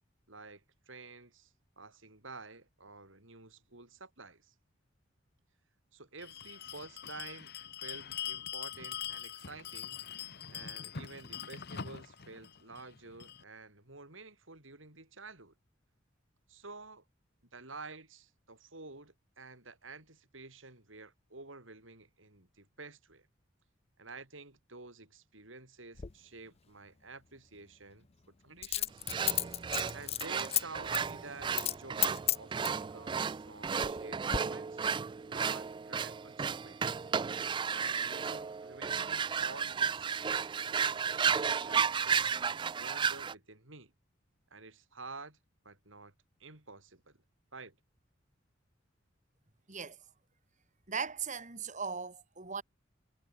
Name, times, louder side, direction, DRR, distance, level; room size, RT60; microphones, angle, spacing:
voice 1, 0.3-4.5 5.9-7.5 7.8-10.0 10.5-15.5 16.5-17.0 17.5-23.3 24.0-28.1 28.4-29.0 29.9-31.5 31.8-34.8 35.3-37.0 37.7-43.9 44.5-45.4 45.6-46.1 46.4-47.2 47.5-47.8, right 3 dB, 75° right, 5.7 m, -50 dB
Bell, 6.2-13.4, left 9 dB, 55° left, 1.2 m, -43 dB
Coin (dropping), 26.0-26.1 28.6-30.6 30.9-31.1 31.5-31.8 32.0-32.8 33.5-34.0 34.3-34.4, left 11 dB, 30° left, 0.5 m, -32 dB
sound 1, 29.1-43.3, right 6 dB, 25° right, 0.3 m, -33 dB
voice 2, 50.9-52.6, right 5 dB, 40° right, 3.5 m, -38 dB
head